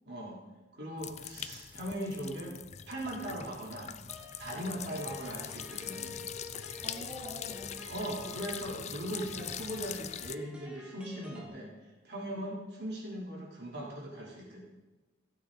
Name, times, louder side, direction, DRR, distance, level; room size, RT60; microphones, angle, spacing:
voice 1, 0.0-0.4 0.7-2.5 2.9-3.9 4.4-6.1 7.9-11.7 12.0-14.6, equal, 60° right, -4 dB, 3.5 m, -39 dB
sound 1, 1.0-10.3, left 9 dB, 35° left, 0.4 m, -42 dB
sound 2, 4.1-11.5, equal, 5° right, 1.6 m, -49 dB
voice 2, 6.8-8.5 12.2-12.5, left 1 dB, 25° right, -6 dB, 2.9 m, -47 dB
16.5 x 8.8 x 4.0 m, 1.2 s
head